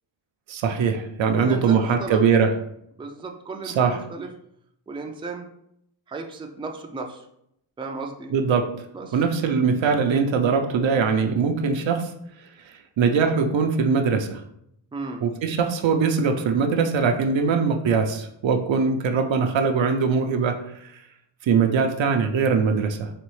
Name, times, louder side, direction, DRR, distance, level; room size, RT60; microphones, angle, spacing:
voice 1, 0.5-2.5 3.6-4.0 8.3-8.7 9.1-12.1 13.0-14.4 15.2-20.5 20.8-20.9 21.4-23.1, right 5 dB, 70° right, 5 dB, 0.6 m, -21 dB
voice 2, 1.3-2.2 3.0-4.3 4.9-5.5 6.1-7.3 7.8-8.3 8.9-9.1 14.9-15.3, right 3 dB, 10° right, 3 dB, 0.4 m, -34 dB
4.2 x 3.0 x 3.1 m, 0.75 s
cardioid pair, 70°, 48 cm